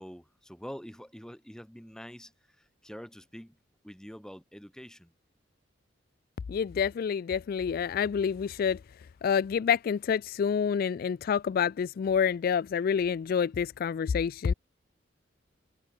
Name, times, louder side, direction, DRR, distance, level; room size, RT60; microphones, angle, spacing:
voice 1, 0.0-3.6 3.8-5.1, equal, 5° left, 1.8 m, -46 dB
voice 2, 6.5-8.8 9.2-14.5, left 7 dB, 50° left, 0.3 m, -28 dB
head